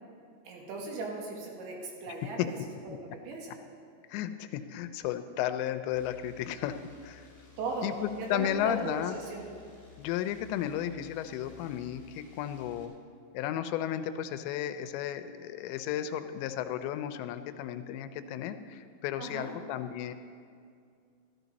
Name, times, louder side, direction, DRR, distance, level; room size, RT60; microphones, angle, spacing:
voice 1, 0.5-2.6 2.8-3.6 7.6-9.5 19.2-19.5, right 3 dB, 90° right, 0 dB, 4.0 m, -38 dB
voice 2, 4.1-6.8 7.0-7.3 7.8-9.2 10.0-12.9 13.3-20.1, left 11 dB, 85° left, 10 dB, 2.8 m, -34 dB
sound 1, 5.9-12.8, left 7 dB, 10° left, 1.4 m, -57 dB
13.5 x 13.0 x 4.1 m, 2.3 s
omnidirectional pair, 5.1 m